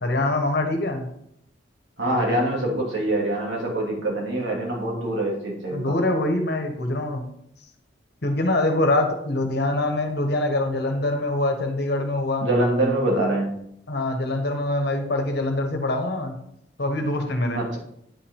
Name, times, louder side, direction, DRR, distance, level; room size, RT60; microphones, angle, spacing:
voice 1, 0.0-1.1 5.7-7.2 8.2-12.5 13.9-16.3 16.8-17.6, left 2 dB, 65° left, 5 dB, 1.4 m, -24 dB
voice 2, 2.0-5.9 12.4-13.5 17.5-17.8, right 1 dB, 75° right, -2 dB, 2.7 m, -24 dB
9.5 x 5.7 x 3.7 m, 0.74 s
head